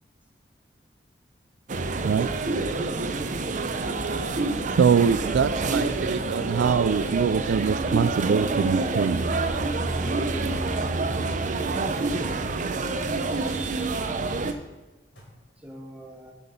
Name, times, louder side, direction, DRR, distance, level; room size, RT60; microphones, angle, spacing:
sound 1, 1.7-14.5, right 3 dB, 45° right, 0.6 m, -27 dB
voice 1, 4.8-9.3, right 6 dB, 85° right, 15 dB, 0.3 m, -23 dB
sound 2, 7.3-7.4 7.8-10.8 11.7-14.6 15.2-15.3, equal, 75° left, 4.0 m, -49 dB
voice 2, 11.3-12.5 15.6-16.3, right 1 dB, 10° right, -2 dB, 1.7 m, -44 dB
12.0 x 5.9 x 5.4 m, 1.1 s
head